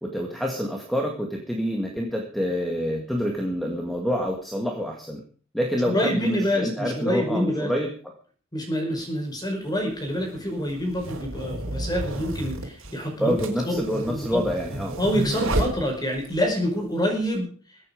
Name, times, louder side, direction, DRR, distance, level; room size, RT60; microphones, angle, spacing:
voice 1, 0.0-5.2 5.5-7.9 13.2-15.0, equal, ahead, 1 dB, 1.9 m, -27 dB
voice 2, 5.9-7.7 8.5-13.3 13.6-14.4 15.0-17.5, equal, 20° left, 2 dB, 5.2 m, -26 dB
sound 1, 9.0-9.1 10.0-16.4, right 1 dB, 80° right, 4.0 m, -31 dB
22.0 x 8.7 x 5.1 m, 0.43 s
head